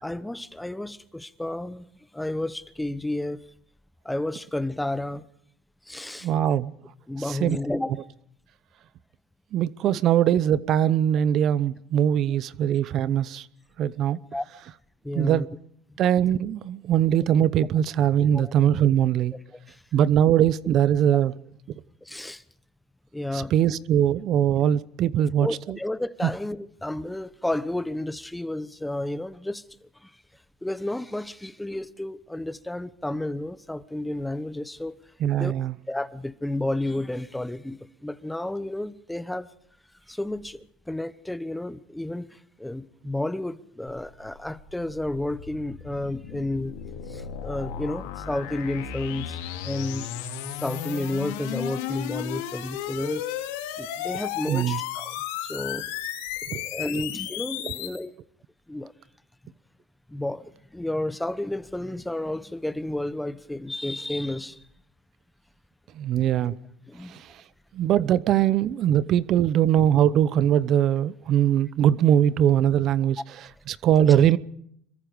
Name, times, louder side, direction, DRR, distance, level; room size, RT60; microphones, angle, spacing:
voice 1, 0.0-3.5 4.0-5.3 5.9-6.3 7.1-8.0 9.9-10.0 14.3-14.4 15.0-15.5 17.2-17.3 18.3-18.5 19.7-19.8 22.0-22.4 23.1-23.8 24.6-24.7 25.4-30.1 30.6-35.0 35.3-35.5 35.9-39.5 40.1-46.7 47.1-49.4 49.6-50.1 50.6-53.4 53.7-55.2 55.4-55.8 56.5-58.1 58.7-58.9 60.1-64.6 66.4-66.5 66.9-67.2, left 1 dB, 5° left, 1.1 m, -31 dB
voice 2, 6.2-6.7 7.3-7.6 9.5-13.5 13.8-14.2 15.1-15.5 16.0-19.3 19.9-21.3 23.3-25.5 35.2-35.7 54.5-54.8 56.5-56.6 66.0-66.5 67.1-67.3 67.7-73.2 73.7-74.4, right 10 dB, 50° right, 0.8 m, -21 dB
sound 1, 43.9-58.0, left 10 dB, 85° left, 4.1 m, -34 dB
26.0 x 22.5 x 5.2 m
supercardioid pair, 105°, 0 cm